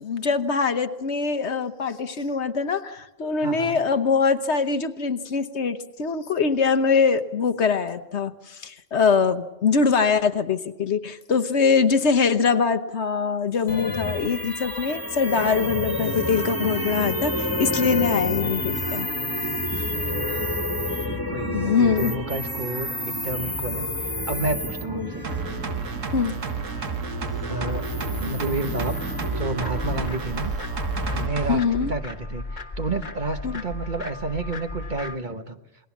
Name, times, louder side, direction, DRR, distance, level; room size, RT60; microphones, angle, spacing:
voice 1, 0.0-19.1 21.5-22.1 24.9-25.1 26.1-26.3 31.5-31.9 33.4-33.6, left 5 dB, 60° left, 11 dB, 1.3 m, -23 dB
voice 2, 3.4-3.8 20.1-20.5 21.3-25.3 27.5-27.8 28.2-30.5 31.1-35.6, right 3 dB, 40° right, 7 dB, 1.3 m, -31 dB
sound 1, 13.7-31.3, left 1 dB, 15° left, 1.8 m, -29 dB
sound 2, 25.2-31.6 31.9-32.0, right 6 dB, 85° right, 1.8 m, -31 dB
sound 3, 29.6-35.2, left 2 dB, 35° left, 1.6 m, -35 dB
28.5 x 20.5 x 7.2 m, 0.95 s
omnidirectional pair, 1.3 m